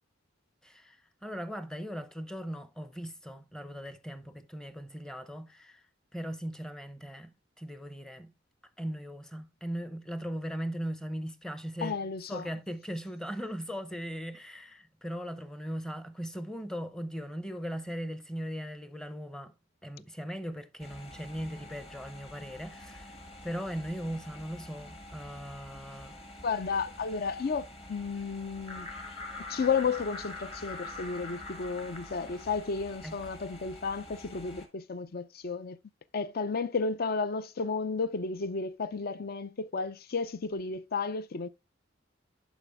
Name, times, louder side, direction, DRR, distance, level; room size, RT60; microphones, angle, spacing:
voice 1, 0.6-1.0 1.2-5.8 6.1-8.3 8.8-12.0 12.3-19.5 19.8-23.2 23.4-26.2 33.0-33.2, equal, 5° left, 0.7 m, -39 dB
voice 2, 11.8-12.5 26.4-28.9 29.5-35.8 36.1-41.5, left 5 dB, 50° left, 0.5 m, -33 dB
sound 1, 20.8-34.7, left 2 dB, 30° left, 1.9 m, -45 dB
11.0 x 5.0 x 3.5 m
head